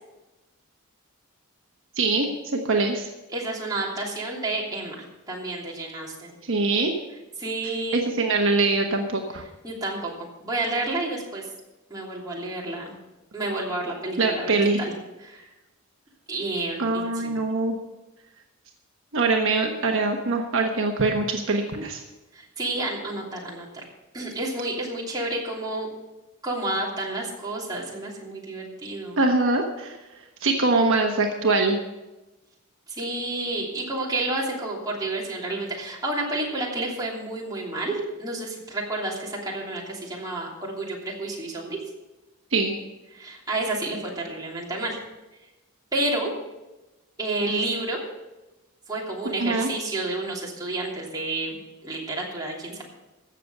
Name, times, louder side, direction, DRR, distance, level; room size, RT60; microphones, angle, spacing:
voice 1, 2.0-3.1 6.4-6.9 7.6-9.4 14.2-14.8 16.8-17.8 19.1-22.0 29.2-30.0 30.4-31.8 42.5-42.7 49.4-49.7, right 3 dB, 60° right, 2 dB, 1.2 m, -23 dB
voice 2, 3.3-6.3 7.4-8.0 9.6-11.4 11.9-12.9 13.3-14.5 14.8-14.9 15.2-15.5 16.3-17.4 22.3-23.7 24.1-25.9 26.4-29.2 32.9-41.8 43.1-45.0 45.9-46.3 47.2-48.0 48.9-52.8, right 2 dB, 20° right, -3 dB, 3.0 m, -30 dB
15.5 x 6.9 x 6.6 m, 1.1 s
head